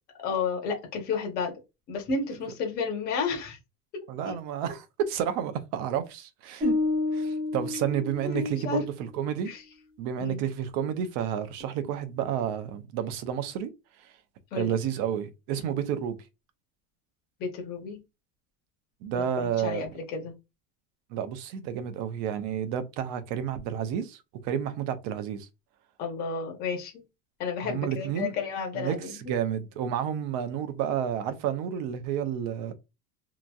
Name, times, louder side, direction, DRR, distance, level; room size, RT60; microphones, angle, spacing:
voice 1, 0.2-1.5 1.9-3.6 4.2-4.4 8.2-8.9 9.5-9.6 10.2-10.4 14.5-14.7 17.4-18.0 19.1-20.3 26.0-27.0 27.4-29.3, left 5 dB, 35° left, 0.7 m, -32 dB
voice 2, 4.1-6.8 7.1-8.8 9.1-9.5 10.0-13.7 14.6-16.2 19.0-19.9 21.1-24.2 24.4-25.5 27.6-28.3 28.8-29.0 29.3-32.7, right 9 dB, 55° right, 0.6 m, -30 dB
sound 1, 6.6-8.8, left 3 dB, 20° right, 1.0 m, -29 dB
2.9 x 2.5 x 2.2 m
cardioid pair, 175°, 29 cm